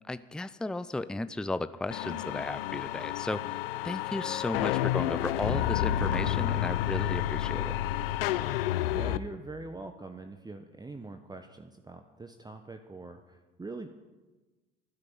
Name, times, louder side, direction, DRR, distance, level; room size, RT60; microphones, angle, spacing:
voice 1, 0.0-3.6 3.8-7.8, left 2 dB, 5° left, 14 dB, 0.6 m, -35 dB
sound 1, 1.9-9.2, left 12 dB, 75° left, 0.7 m, -30 dB
voice 2, 8.6-13.9, right 3 dB, 15° right, 7 dB, 1.1 m, -43 dB
14.0 x 9.8 x 8.8 m, 1.2 s
hypercardioid pair, 70°, 29 cm